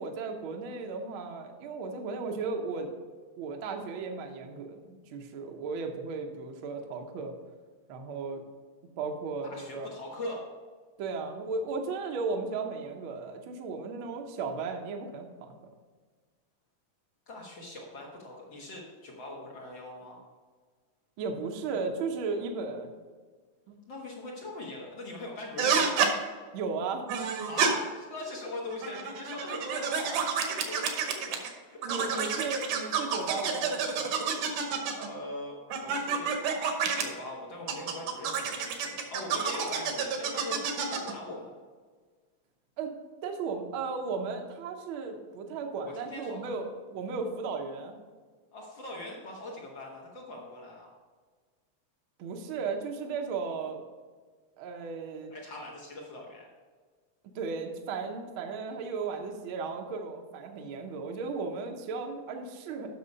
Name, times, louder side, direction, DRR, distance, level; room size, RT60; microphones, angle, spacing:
voice 1, 0.0-2.9 3.4-7.3 7.9-8.4 9.0-9.9 11.0-15.5 21.2-22.9 23.7-23.8 26.5-27.1 31.8-34.2 42.8-42.9 43.2-48.0 52.2-53.8 54.6-55.3 57.3-62.9, right 4 dB, 65° right, 3 dB, 1.4 m, -35 dB
voice 2, 9.4-10.5 17.3-20.2 21.7-21.8 23.9-25.9 27.5-31.8 32.1-32.6 34.8-36.4 36.9-41.5 45.8-46.6 48.5-50.9 55.3-56.5, left 2 dB, 50° left, -3 dB, 1.6 m, -41 dB
sound 1, 25.6-26.1 27.1-27.7 28.7-31.5 31.8-35.1 35.7-37.0 37.7-41.1, right 6 dB, 85° right, 2.5 m, -29 dB
8.4 x 6.1 x 5.3 m, 1.5 s
omnidirectional pair, 3.4 m